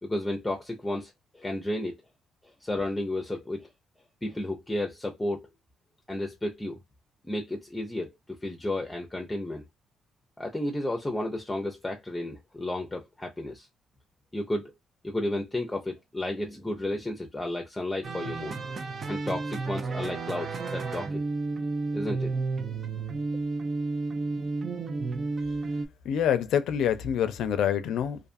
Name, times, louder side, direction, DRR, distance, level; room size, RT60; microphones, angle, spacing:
voice 1, 0.0-2.0 2.6-3.7 4.2-5.5 6.1-6.8 7.2-8.1 8.4-9.6 10.4-13.7 14.3-14.7 15.0-18.6 19.0-21.2 21.9-22.3, left 1 dB, 15° left, 0.6 m, -32 dB
sound 1, 18.0-25.9, right 3 dB, 45° right, 0.5 m, -32 dB
voice 2, 26.1-28.2, left 9 dB, 80° left, 0.5 m, -26 dB
2.5 x 2.4 x 2.5 m
cardioid pair, 90°, 0 cm